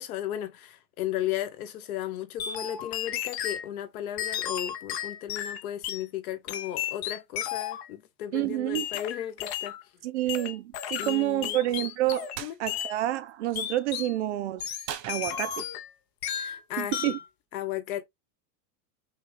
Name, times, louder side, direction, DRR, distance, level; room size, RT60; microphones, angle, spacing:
voice 1, 0.0-9.8 11.0-11.7 12.4-12.5 16.3-17.1 17.5-18.1, left 12 dB, 65° left, 1.2 m, -35 dB
sound 1, 2.4-3.7 4.2-6.0 6.5-7.9 8.7-9.8 10.3-12.4 12.7-12.9 13.6-14.1 14.6-15.9 16.2-16.6 16.9-17.3, left 10 dB, 40° left, 0.7 m, -34 dB
voice 2, 8.3-8.9 10.0-12.3 12.6-14.7 15.1-15.6 16.8-17.2, right 15 dB, 50° right, 0.4 m, -28 dB
sound 2, 12.3-12.6 14.8-15.8, right 10 dB, 85° right, 1.2 m, -39 dB
5.9 x 2.3 x 3.1 m
supercardioid pair, 180°, 48 cm